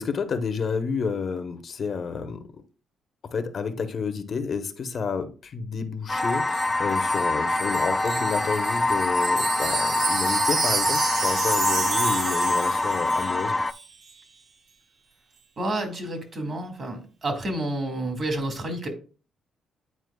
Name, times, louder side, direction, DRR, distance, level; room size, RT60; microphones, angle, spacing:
voice 1, 0.0-2.6 3.3-13.6, left 5 dB, 50° left, 0.8 m, -30 dB
sound 1, 6.1-13.7, left 2 dB, 15° left, 0.3 m, -25 dB
Wind chime, 6.2-13.4 13.7-13.9, right 4 dB, 65° right, 1.1 m, -30 dB
voice 2, 15.6-18.9, right 1 dB, 45° right, 1.9 m, -30 dB
9.4 x 4.4 x 2.2 m
cardioid pair, 90°, 0 cm